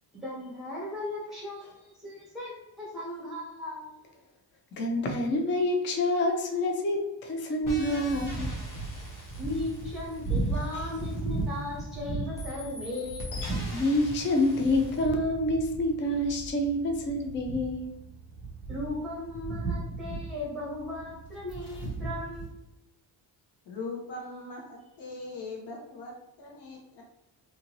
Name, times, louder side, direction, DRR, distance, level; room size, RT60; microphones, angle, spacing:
voice 1, 0.2-3.9 9.4-13.3 18.7-22.6, left 1 dB, ahead, -5 dB, 1.1 m, -37 dB
voice 2, 4.8-8.5 13.7-17.9, left 1 dB, 30° left, 3 dB, 0.3 m, -27 dB
sound 1, 7.6-22.5, right 3 dB, 80° left, 1.5 m, -36 dB
sound 2, 7.7-11.9 12.4-15.1, left 2 dB, 45° left, 0.9 m, -43 dB
voice 3, 23.6-27.0, left 3 dB, 65° left, -2 dB, 1.1 m, -40 dB
2.7 x 2.6 x 2.9 m, 0.94 s
wide cardioid pair, 160°, 44 cm